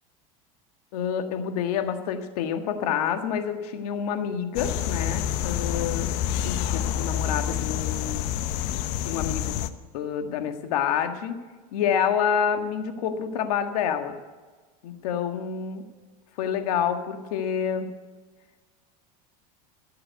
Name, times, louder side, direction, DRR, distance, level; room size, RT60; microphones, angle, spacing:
voice 1, 0.9-6.1 6.4-8.2 9.0-9.6 9.9-11.4 11.7-14.1 14.8-15.9 16.4-17.9, left 8 dB, 80° left, 7 dB, 1.7 m, -28 dB
sound 1, 4.6-9.7, left 10 dB, 60° left, 0.9 m, -28 dB
16.0 x 7.9 x 8.0 m, 1.4 s
supercardioid pair, 125°, 19 cm